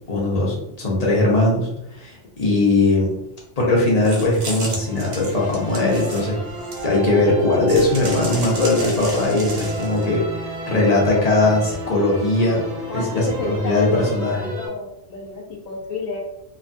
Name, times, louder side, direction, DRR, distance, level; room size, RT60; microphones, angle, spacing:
voice 1, 0.1-1.7 2.0-3.1 3.6-6.4 6.8-10.3 10.7-12.6 12.9-14.4, left 2 dB, 40° left, -4 dB, 0.7 m, -19 dB
sound 1, 4.0-7.1 7.7-10.0, right 2 dB, 90° right, 1.1 m, -33 dB
sound 2, 4.2-14.7, right 1 dB, 50° right, 1.1 m, -34 dB
voice 2, 12.9-16.2, left 3 dB, 80° left, 0 dB, 1.1 m, -31 dB
2.9 x 2.3 x 2.5 m, 0.80 s
omnidirectional pair, 1.4 m